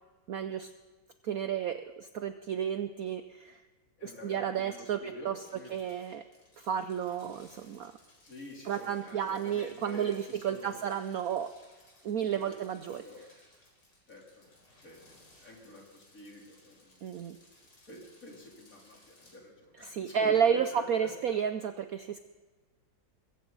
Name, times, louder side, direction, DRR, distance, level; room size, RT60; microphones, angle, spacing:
voice 1, 0.3-0.7 1.2-3.6 4.0-5.4 5.7-6.2 6.6-7.9 8.7-11.5 12.0-13.0 17.0-17.4 19.8-22.2, right 8 dB, 65° right, 9 dB, 0.9 m, -32 dB
voice 2, 4.0-5.8 8.2-10.9 12.0-13.3 14.1-14.5 14.8-17.0 17.9-21.1, left 1 dB, 45° left, -2 dB, 4.0 m, -48 dB
sound 1, 5.4-19.4, left 1 dB, 65° left, 4.9 m, -62 dB
22.5 x 14.5 x 4.0 m, 1.3 s
omnidirectional pair, 2.1 m